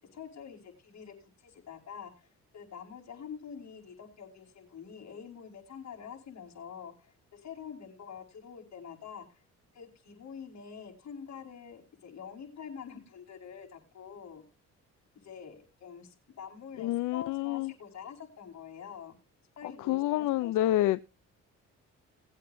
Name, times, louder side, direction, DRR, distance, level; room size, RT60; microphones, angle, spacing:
voice 1, 0.1-2.3 2.5-9.4 9.7-14.4 15.2-19.1 19.6-20.7, left 7 dB, 60° left, 5.1 m, -46 dB
voice 2, 16.8-17.7 19.6-21.0, left 14 dB, 90° left, 0.6 m, -28 dB
20.0 x 8.3 x 2.7 m
cardioid pair, 90°, 30 cm